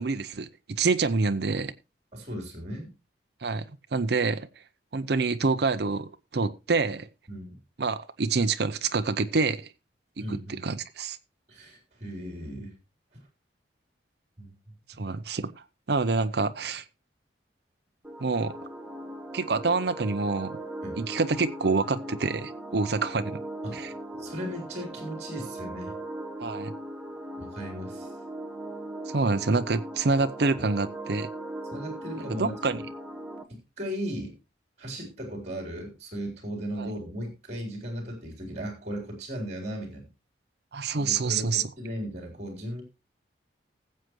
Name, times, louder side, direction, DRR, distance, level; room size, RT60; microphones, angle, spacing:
voice 1, 0.0-1.7 3.4-4.5 4.9-7.1 7.8-9.7 10.3-11.2 15.0-15.5 15.9-16.8 18.2-18.6 19.3-20.6 21.0-23.4 23.7-23.9 26.4-26.7 29.1-31.3 32.4-32.8 36.8-36.9 40.7-41.6, right 4 dB, 60° right, 9 dB, 0.6 m, -27 dB
voice 2, 2.1-2.9 7.3-7.6 10.2-10.8 11.5-12.7 14.4-14.7 20.8-21.0 23.6-26.0 27.4-28.1 31.7-32.5 33.8-34.3 34.8-40.1 41.0-42.8, equal, 35° right, 1 dB, 3.7 m, -37 dB
sound 1, 18.0-33.4, right 1 dB, 5° right, 1.0 m, -39 dB
19.5 x 7.7 x 3.1 m, 0.27 s
head